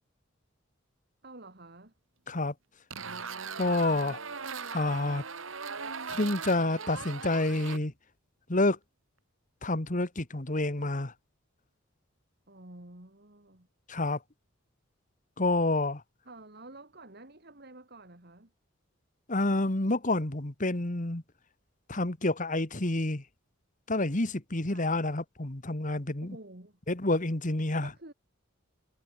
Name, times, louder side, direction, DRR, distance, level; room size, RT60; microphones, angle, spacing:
voice 1, 1.2-1.9 12.5-13.7 16.2-18.5 24.7-25.0 26.2-26.8 27.8-28.1, right 2 dB, 50° right, 3.3 m, -50 dB
sound 1, 2.9-7.8, right 5 dB, 70° right, 2.2 m, -39 dB
voice 2, 3.6-4.2 4.7-5.2 6.1-7.9 8.5-8.8 9.6-11.1 13.9-14.2 15.4-16.0 19.3-21.2 21.9-23.2 23.9-26.4 26.9-27.9, left 2 dB, 40° left, 1.8 m, -28 dB
head